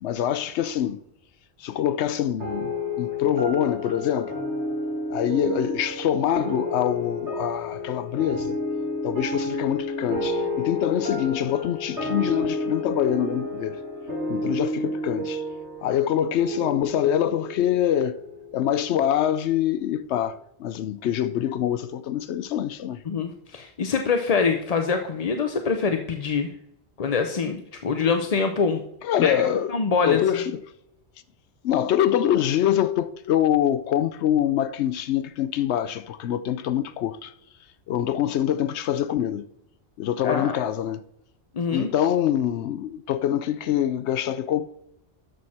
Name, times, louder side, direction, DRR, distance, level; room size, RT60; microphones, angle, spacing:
voice 1, 0.0-1.0 1.6-4.4 5.1-8.6 9.0-13.8 14.3-15.4 15.8-18.2 18.5-23.0 29.0-29.7 30.0-30.6 31.6-37.3 37.9-39.5 40.0-41.0 41.7-44.6, left 10 dB, 80° left, 0.9 m, -25 dB
sound 1, 2.4-19.2, left 1 dB, 85° right, 2.8 m, -31 dB
voice 2, 23.1-26.5 27.0-28.8 29.2-29.3 29.7-30.4 40.2-40.6 41.5-41.9, left 5 dB, 40° left, 0.7 m, -24 dB
12.5 x 6.2 x 4.3 m
omnidirectional pair, 1.1 m